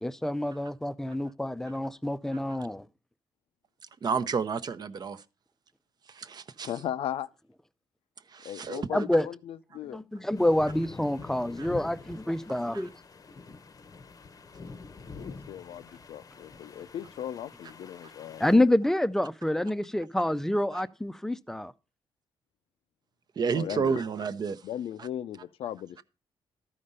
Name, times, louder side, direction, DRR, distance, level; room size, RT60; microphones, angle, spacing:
voice 1, 0.0-2.8 8.9-9.3 9.9-12.9 18.4-21.7, left 1 dB, 5° left, 0.5 m, -27 dB
voice 2, 4.0-5.2 6.1-6.7 8.3-9.0 11.6-11.7 12.7-12.8 20.7-20.8 23.4-24.6, right 5 dB, 45° right, 0.7 m, -31 dB
voice 3, 6.6-7.3 8.4-10.0 15.2-18.5 23.5-24.0 24.6-26.0, left 10 dB, 75° left, 0.5 m, -37 dB
sound 1, 10.3-18.6, left 4 dB, 35° left, 0.8 m, -46 dB
13.0 x 5.1 x 5.4 m
cardioid pair, 110°, 10 cm